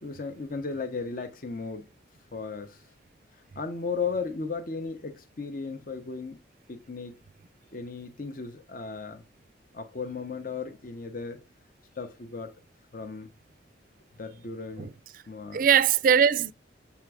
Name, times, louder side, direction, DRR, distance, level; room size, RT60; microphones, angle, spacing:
voice 1, 0.0-1.9 2.3-2.8 3.6-6.4 6.7-7.1 7.7-9.2 9.7-11.4 12.0-12.6 12.9-13.3 14.2-14.9 15.3-15.7, left 4 dB, 50° left, 0.7 m, -35 dB
voice 2, 14.8-15.2 15.5-16.5, right 8 dB, 45° right, 0.4 m, -22 dB
7.1 x 3.6 x 4.8 m
head